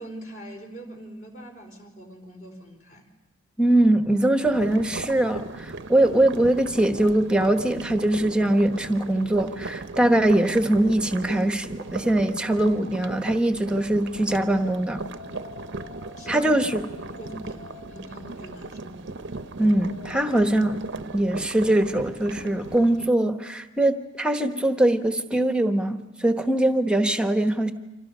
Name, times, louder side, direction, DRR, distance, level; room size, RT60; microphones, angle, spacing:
voice 1, 0.0-3.1 16.2-16.5 17.1-19.1, right 1 dB, 40° left, 3 dB, 4.2 m, -42 dB
voice 2, 3.6-15.1 16.3-16.9 19.6-27.7, right 1 dB, 5° right, 7 dB, 1.1 m, -22 dB
sound 1, 4.4-23.1, right 3 dB, 55° right, 0.7 m, -37 dB
sound 2, 14.4-20.9, left 5 dB, 60° left, 6.6 m, -48 dB
29.5 x 26.0 x 5.5 m, 1.0 s
head